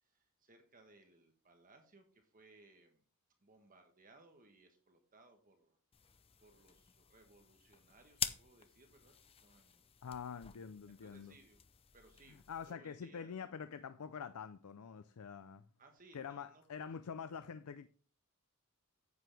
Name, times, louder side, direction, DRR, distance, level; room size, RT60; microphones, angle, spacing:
voice 1, 0.0-3.0 3.4-5.8 6.4-9.8 10.3-10.4 10.9-11.6 11.9-12.4 12.7-13.7 15.8-16.6, right 2 dB, 40° right, 1.2 m, -64 dB
sound 1, 5.9-12.7, left 8 dB, 25° left, 0.5 m, -47 dB
voice 2, 10.0-11.4 12.5-15.6 16.1-17.9, left 6 dB, 90° left, 0.5 m, -46 dB
9.5 x 7.9 x 3.4 m
head